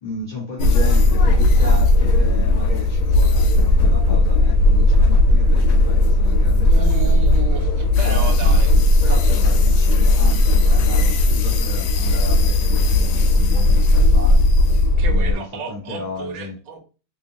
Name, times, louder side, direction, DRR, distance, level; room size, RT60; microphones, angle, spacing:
voice 1, 0.0-7.1 7.9-8.6 9.0-14.5 15.1-16.6, left 1 dB, 20° left, 1.4 m, -34 dB
sound 1, 0.6-15.3, left 2 dB, 80° left, 1.4 m, -16 dB
voice 2, 6.7-8.7 15.0-16.8, right 5 dB, 65° right, 1.3 m, -32 dB
3.2 x 2.8 x 2.9 m
omnidirectional pair, 2.3 m